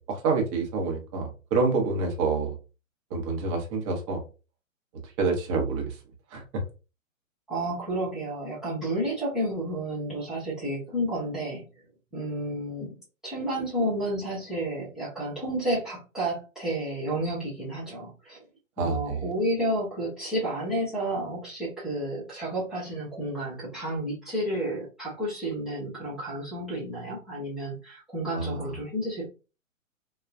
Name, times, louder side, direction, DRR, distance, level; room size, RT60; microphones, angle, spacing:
voice 1, 0.0-2.6 3.1-4.2 5.2-6.0 6.3-6.6 18.8-19.2 28.3-28.7, right 4 dB, 25° right, 2 dB, 0.8 m, -27 dB
voice 2, 7.5-11.6 12.1-13.0 13.2-18.4 18.8-29.3, right 1 dB, ahead, -12 dB, 0.4 m, -31 dB
3.5 x 2.3 x 2.5 m, 0.31 s
figure-of-eight pair, 120°, 39 cm